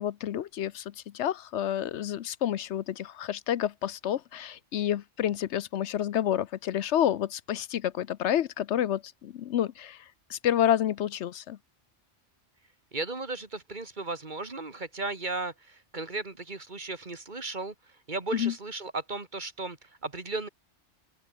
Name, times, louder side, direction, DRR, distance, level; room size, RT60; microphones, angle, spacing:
voice 1, 0.0-10.0 10.3-11.6 18.3-18.5, left 10 dB, 75° left, 1.0 m, -29 dB
voice 2, 12.9-17.7 18.1-20.5, right 3 dB, 40° right, 2.2 m, -35 dB
open air
omnidirectional pair, 1.2 m